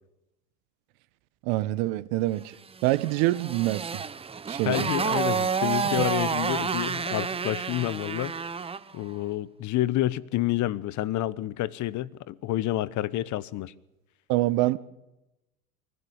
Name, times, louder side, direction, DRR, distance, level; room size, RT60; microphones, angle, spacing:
voice 1, 1.4-2.6 2.8-4.0 4.5-4.9 6.0-6.1 14.3-14.8, right 17 dB, 55° right, 1.3 m, -25 dB
Motorcycle, 2.8-8.9, right 5 dB, 10° right, 0.7 m, -29 dB
voice 2, 4.6-8.4 8.9-13.7, left 14 dB, 40° left, 1.1 m, -29 dB
23.5 x 16.0 x 8.1 m
hypercardioid pair, 90°, 46 cm